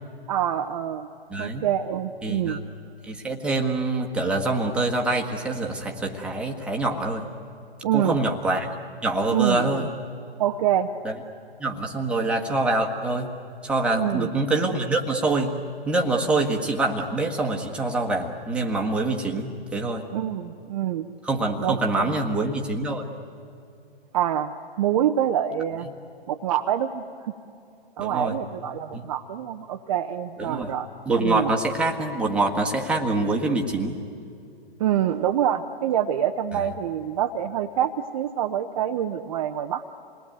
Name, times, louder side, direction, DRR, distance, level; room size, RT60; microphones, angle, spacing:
voice 1, 0.3-1.1 1.4-2.6 7.8-8.2 9.3-9.9 10.4-10.9 13.9-14.3 20.1-21.1 21.6-22.1 24.1-24.5 24.8-25.9 26.3-27.3 28.0-30.9 31.2-31.5 34.8-39.8, right 10 dB, 35° right, 5 dB, 0.8 m, -26 dB
voice 2, 1.3-1.6 2.2-2.6 3.1-7.3 7.9-8.7 9.0-9.9 11.0-11.1 11.6-13.3 13.6-15.5 15.8-20.1 21.2-23.0 28.0-28.4 28.9-29.1 30.4-30.7 31.0-34.0 36.5-36.6, right 2 dB, 5° right, 0 dB, 1.5 m, -25 dB
28.0 x 20.0 x 9.2 m, 2.5 s
figure-of-eight pair, 130°, 32 cm